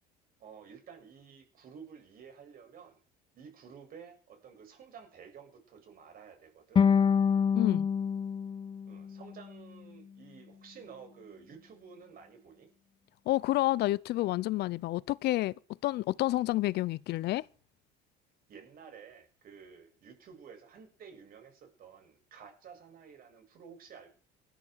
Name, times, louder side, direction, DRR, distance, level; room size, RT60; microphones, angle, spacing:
voice 1, 0.4-3.0 3.3-6.9 8.9-12.7 18.5-24.1, right 6 dB, 50° right, 7.4 m, -52 dB
sound 1, 6.8-9.9, left 6 dB, 25° left, 0.7 m, -27 dB
voice 2, 7.5-7.9 13.3-15.5 15.8-17.4, left 16 dB, 60° left, 0.7 m, -29 dB
20.0 x 13.0 x 4.7 m
cardioid pair, 110°, 19 cm